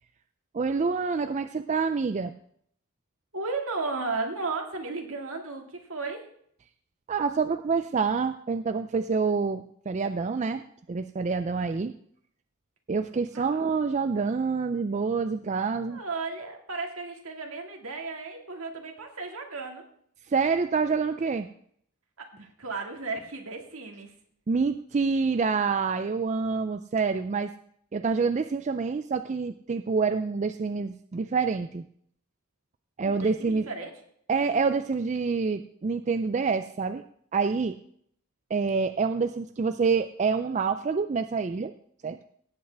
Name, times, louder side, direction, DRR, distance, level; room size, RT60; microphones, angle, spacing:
voice 1, 0.5-2.3 7.1-10.6 10.9-11.9 12.9-16.0 20.3-21.5 24.5-27.5 27.9-31.8 33.0-33.6 34.3-37.0 37.3-37.7 38.5-41.7 42.0-42.2, right 5 dB, 30° right, 10 dB, 0.3 m, -27 dB
voice 2, 3.3-6.3 13.3-13.5 15.7-19.9 22.2-24.1 33.0-33.9, right 3 dB, 70° right, 2 dB, 2.0 m, -34 dB
17.0 x 7.9 x 3.4 m, 0.65 s
head